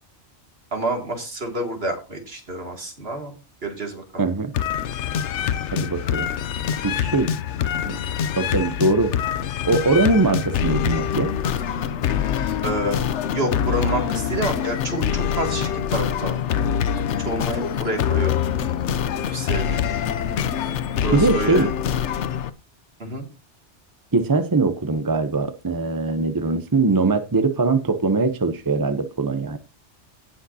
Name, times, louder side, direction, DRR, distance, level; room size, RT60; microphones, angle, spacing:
voice 1, 0.7-3.4 3.6-4.3 12.6-13.0 13.3-16.4 17.2-18.3 19.3-19.8 21.0-21.7 23.0-23.2, right 2 dB, 60° right, 3 dB, 2.6 m, -28 dB
voice 2, 4.2-4.5 5.7-6.3 6.8-7.3 7.8-8.0 8.3-9.1 9.7-11.3 21.1-21.7 24.1-29.6, right 3 dB, 20° right, 10 dB, 0.7 m, -21 dB
sound 1, 4.5-22.5, left 8 dB, 75° left, 1.0 m, -25 dB
17.0 x 6.5 x 2.8 m, 0.29 s
omnidirectional pair, 1.2 m